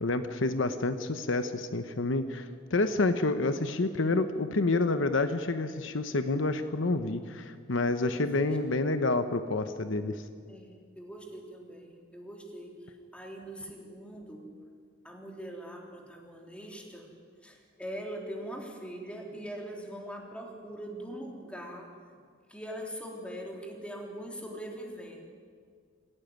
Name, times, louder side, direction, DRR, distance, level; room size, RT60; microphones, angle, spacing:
voice 1, 0.0-10.2, left 2 dB, 70° left, 9 dB, 1.0 m, -28 dB
voice 2, 8.0-8.5 8.8-8.9 10.5-14.5 15.0-17.1 17.4-21.9 22.5-25.2, equal, 5° left, 1 dB, 3.5 m, -42 dB
26.5 x 15.5 x 9.5 m, 2.1 s
head